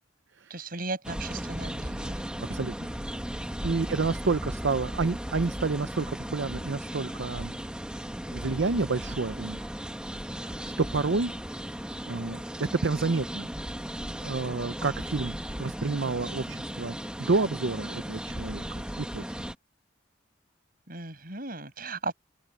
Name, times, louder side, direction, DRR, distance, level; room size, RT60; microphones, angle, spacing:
voice 1, 0.5-2.2 3.8-3.9 20.9-22.1, right 3 dB, 50° right, 7.5 m, -36 dB
sound 1, 1.0-19.5, equal, 5° right, 1.3 m, -36 dB
voice 2, 2.5-2.9 3.6-7.6 8.3-9.6 10.4-11.3 12.1-13.5 14.2-18.6 19.0-19.3, right 3 dB, 65° right, 0.7 m, -29 dB
open air
head